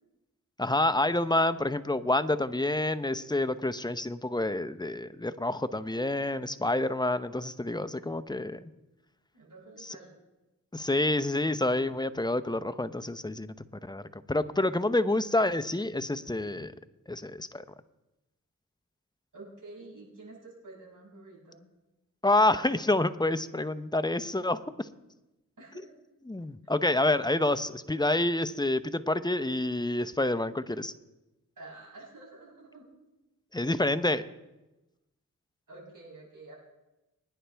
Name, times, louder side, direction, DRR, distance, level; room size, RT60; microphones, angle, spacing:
voice 1, 0.6-8.6 9.8-10.0 10.7-13.5 13.8-16.7 17.1-17.6 22.2-24.9 26.2-30.9 33.5-34.3, left 2 dB, 10° left, 12 dB, 0.8 m, -28 dB
voice 2, 9.3-10.1 19.3-21.6 25.6-25.9 31.6-32.9 33.8-33.9 35.7-36.5, right 2 dB, 60° right, -4 dB, 6.2 m, -49 dB
23.0 x 10.0 x 3.5 m, 1.0 s
cardioid pair, 40°, 36 cm